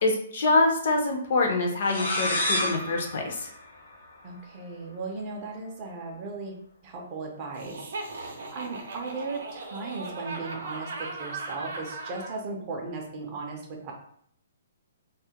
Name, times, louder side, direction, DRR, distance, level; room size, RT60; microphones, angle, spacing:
voice 1, 0.0-3.5, left 2 dB, 45° left, 2 dB, 0.5 m, -25 dB
sound 1, 1.8-4.4, left 1 dB, 85° left, 0.7 m, -30 dB
voice 2, 4.2-6.5 6.8-7.8 8.2-13.9, right 3 dB, 20° right, 0 dB, 0.4 m, -37 dB
Laughter, 7.5-12.4, right 3 dB, 75° right, 0.5 m, -38 dB
2.2 x 2.0 x 2.8 m, 0.65 s
hypercardioid pair, 175°, 0 cm